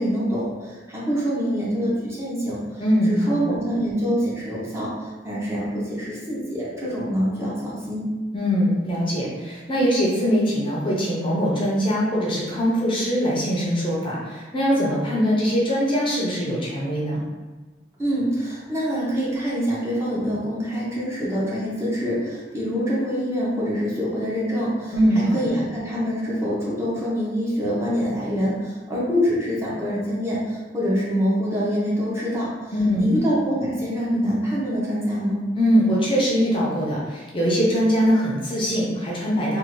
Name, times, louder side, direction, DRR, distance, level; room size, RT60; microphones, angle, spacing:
voice 1, 0.0-8.1 18.0-32.5 33.0-35.4, equal, 15° right, -7 dB, 0.8 m, -25 dB
voice 2, 2.8-3.6 8.3-17.2 24.9-25.5 32.7-33.2 35.6-39.6, equal, 30° left, -5 dB, 0.6 m, -22 dB
2.6 x 2.4 x 3.0 m, 1.3 s
head